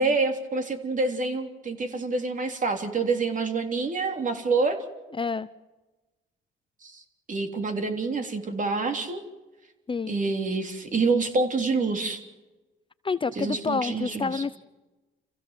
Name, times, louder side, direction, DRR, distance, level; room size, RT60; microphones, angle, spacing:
voice 1, 0.0-4.8 6.8-7.0 7.3-9.2 10.1-12.2 13.4-14.4, right 3 dB, 40° right, 5 dB, 3.5 m, -27 dB
voice 2, 5.2-5.5 9.9-10.1 13.0-14.6, left 4 dB, 25° left, 14 dB, 0.7 m, -28 dB
28.5 x 16.0 x 7.5 m, 1.1 s
cardioid pair, 90°, 20 cm